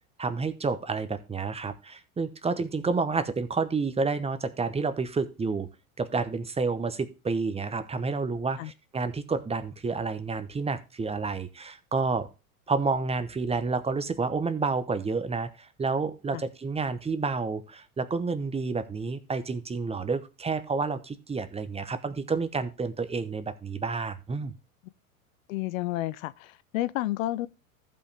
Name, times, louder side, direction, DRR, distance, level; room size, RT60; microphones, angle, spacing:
voice 1, 0.2-5.7 6.0-12.3 12.7-24.5, right 4 dB, 15° right, 0.9 m, -29 dB
voice 2, 25.5-27.5, left 15 dB, 70° left, 0.6 m, -31 dB
14.5 x 5.3 x 3.4 m
hypercardioid pair, 100°, 42 cm